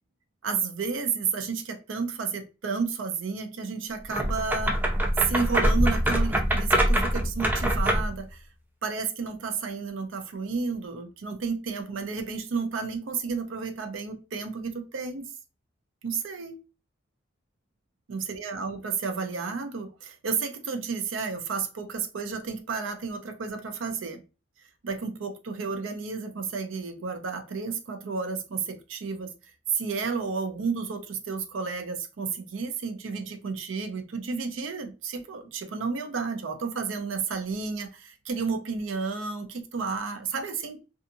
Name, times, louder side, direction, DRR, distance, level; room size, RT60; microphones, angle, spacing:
voice 1, 0.4-4.8 5.2-8.4 8.8-15.3 16.0-16.6 18.1-24.2 24.8-29.3 29.7-40.8, right 5 dB, 85° right, 8 dB, 0.5 m, -31 dB
sound 1, 4.1-8.2, equal, 10° right, 0.4 m, -24 dB
2.7 x 2.4 x 2.5 m, 0.30 s
head